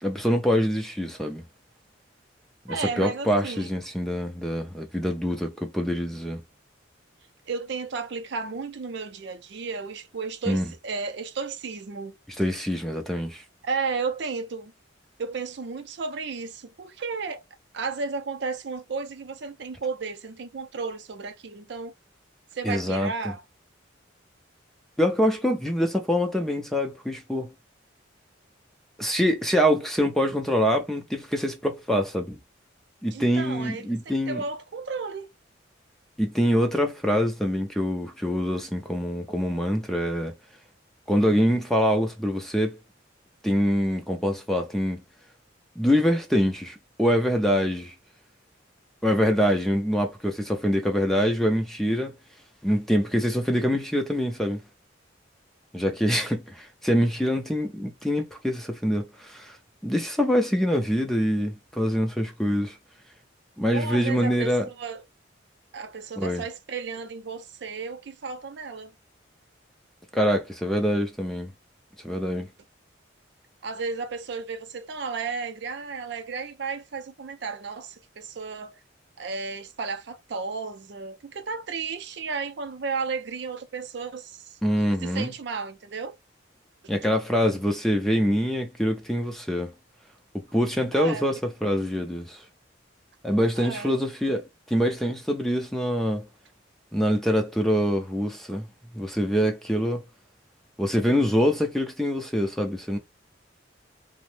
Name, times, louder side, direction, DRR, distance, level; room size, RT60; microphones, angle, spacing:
voice 1, 0.0-1.4 2.7-6.4 10.5-10.6 12.4-13.4 22.6-23.1 25.0-27.5 29.0-32.4 33.0-34.4 36.2-40.3 41.1-42.8 43.4-45.0 45.8-47.9 49.0-52.2 52.6-54.6 55.7-59.6 59.8-62.8 63.6-64.7 66.2-66.4 70.1-71.5 72.0-72.5 84.6-85.3 86.9-89.7 90.3-92.4 93.2-96.3 96.9-98.7 98.9-100.0 100.8-103.0, equal, ahead, 0.4 m, -25 dB
voice 2, 2.7-3.7 7.5-12.2 13.6-14.7 15.2-17.4 17.7-21.9 22.5-23.4 33.1-35.3 63.7-65.0 65.7-68.9 73.6-78.7 79.2-84.6 85.0-86.2 90.9-91.3 93.6-94.0, right 4 dB, 60° right, 0.5 m, -33 dB
3.0 x 2.0 x 3.0 m
head